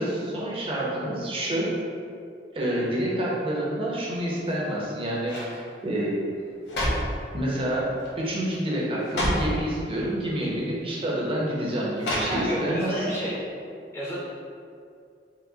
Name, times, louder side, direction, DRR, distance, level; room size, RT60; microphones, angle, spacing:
voice 1, 0.0-1.7 2.5-6.2 7.3-13.1, right 1 dB, 30° right, -5 dB, 0.8 m, -28 dB
sound 1, 4.4-4.8 5.2-5.6 6.4-7.2 8.0-8.2 8.5-8.6 9.0-9.6 10.5-10.6 12.0-12.7 13.1-13.2, equal, 70° left, 1.2 m, -29 dB
voice 2, 12.2-13.4 13.9-14.2, equal, 15° left, -7 dB, 0.6 m, -30 dB
4.7 x 2.1 x 3.9 m, 2.4 s
head